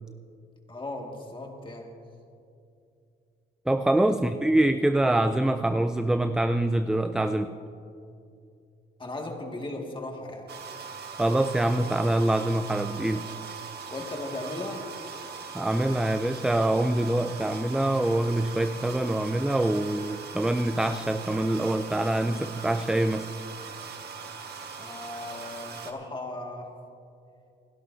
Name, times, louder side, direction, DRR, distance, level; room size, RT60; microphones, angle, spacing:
voice 1, 0.7-1.9 4.1-4.3 9.0-10.5 13.9-14.9 24.8-26.7, left 2 dB, 25° left, 1 dB, 2.1 m, -37 dB
voice 2, 3.7-7.5 11.2-13.3 15.5-23.3, right 1 dB, 5° right, 9 dB, 0.4 m, -25 dB
sound 1, 10.5-25.9, right 5 dB, 55° right, 1.5 m, -40 dB
29.0 x 11.0 x 2.7 m, 2.5 s
cardioid pair, 90°, 20 cm